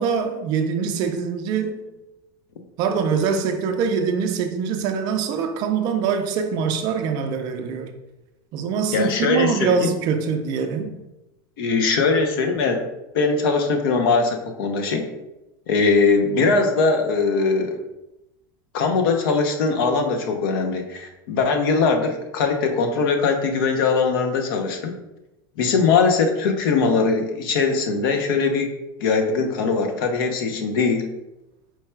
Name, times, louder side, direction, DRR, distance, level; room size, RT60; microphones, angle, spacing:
voice 1, 0.0-1.8 2.8-7.9 8.5-11.0, right 6 dB, 35° right, 0.4 m, -24 dB
voice 2, 8.9-9.9 11.6-12.8 13.1-15.1 15.7-17.8 18.7-24.9 25.6-28.7 29.0-31.1, left 4 dB, 70° left, 0.7 m, -21 dB
4.5 x 2.2 x 4.4 m
supercardioid pair, 170°, 12 cm